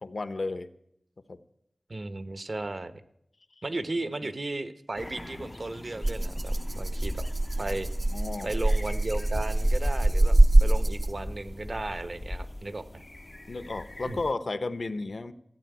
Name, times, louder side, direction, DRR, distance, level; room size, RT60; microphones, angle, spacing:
voice 1, 0.0-0.7 1.3-1.4 4.0-4.3 8.1-8.6 13.5-15.3, left 3 dB, 70° left, 12 dB, 0.9 m, -33 dB
voice 2, 1.9-2.9 3.6-7.3 7.6-7.9 8.4-13.0 14.0-14.2, right 2 dB, 55° right, 11 dB, 1.0 m, -35 dB
sound 1, 5.0-14.3, left 1 dB, 30° left, 0.5 m, -39 dB
Rattle (instrument), 6.0-11.4, right 1 dB, 30° right, 0.5 m, -23 dB
15.0 x 8.6 x 9.3 m, 0.76 s
wide cardioid pair, 65°, 0 cm